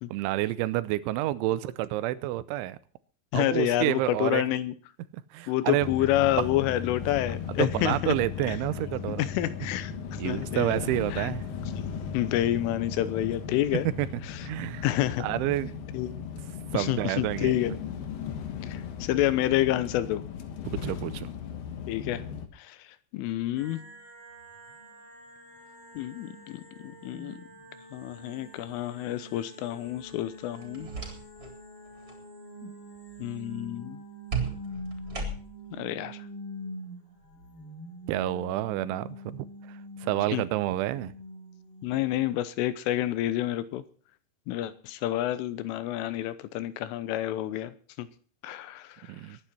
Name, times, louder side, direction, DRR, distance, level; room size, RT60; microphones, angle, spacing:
voice 1, 0.1-2.8 3.3-4.4 5.1-5.9 6.4-6.5 7.5-9.3 10.2-11.4 13.7-14.1 14.4-14.9 15.2-15.8 16.7-17.6 20.6-21.3 38.1-39.5 40.0-41.1 49.1-49.4, right 15 dB, 80° right, 16 dB, 3.0 m, -29 dB
voice 2, 3.3-4.7 5.5-8.1 8.5-8.6 9.2-9.9 10.2-10.9 11.1-11.3 11.8-11.9 12.1-13.9 14.3-14.5 14.8-15.3 15.9-16.1 16.7-17.7 18.6-20.3 21.9-22.2 22.5-22.8 23.1-23.8 26.0-27.4 27.9-30.9 32.6-32.7 33.2-34.0 35.8-36.3 40.3-40.5 41.8-43.8 44.5-47.7 48.0-48.1 48.4-49.1, left 14 dB, 85° left, 14 dB, 3.5 m, -28 dB
sound 1, 5.8-22.5, left 7 dB, 65° left, 2.5 m, -37 dB
sound 2, 23.6-42.1, equal, 30° left, 6.9 m, -45 dB
sound 3, 30.5-31.6 31.9-32.2 34.3-35.7, right 4 dB, 20° right, 3.4 m, -35 dB
22.0 x 10.0 x 4.3 m, 0.42 s
omnidirectional pair, 5.7 m